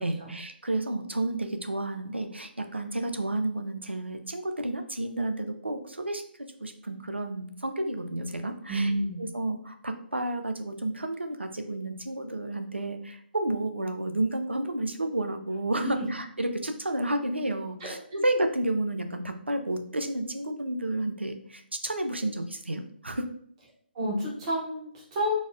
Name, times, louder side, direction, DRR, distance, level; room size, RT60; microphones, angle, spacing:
voice 1, 0.0-6.2 6.6-8.9 9.2-23.3, right 1 dB, 85° right, 7 dB, 0.4 m, -31 dB
voice 2, 8.7-9.2 15.8-16.1 17.8-17.9 23.9-25.4, equal, 30° right, -4 dB, 1.1 m, -29 dB
4.0 x 2.1 x 2.4 m, 0.63 s
figure-of-eight pair, 140°, 6 cm